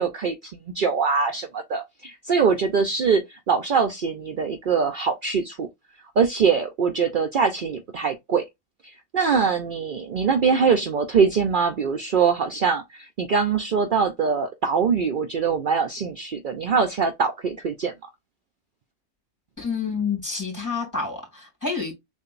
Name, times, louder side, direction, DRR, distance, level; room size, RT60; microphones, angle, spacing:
voice 1, 0.0-5.7 6.2-8.4 8.8-17.9, right 5 dB, 60° right, 0.5 m, -23 dB
voice 2, 19.6-21.9, left 5 dB, 10° left, 2.5 m, -28 dB
6.7 x 2.6 x 2.5 m
omnidirectional pair, 1.6 m